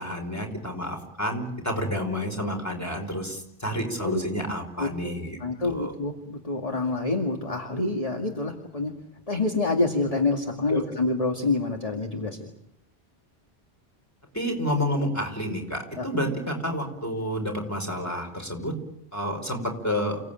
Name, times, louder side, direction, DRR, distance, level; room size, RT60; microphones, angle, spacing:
voice 1, 0.0-5.9 10.7-10.8 14.3-18.7 19.1-20.2, equal, 15° left, 3 dB, 5.1 m, -29 dB
voice 2, 4.8-5.1 5.4-8.9 9.3-12.5 16.0-16.1, left 3 dB, 35° left, 2 dB, 2.2 m, -27 dB
29.0 x 17.5 x 9.1 m, 0.79 s
omnidirectional pair, 1.1 m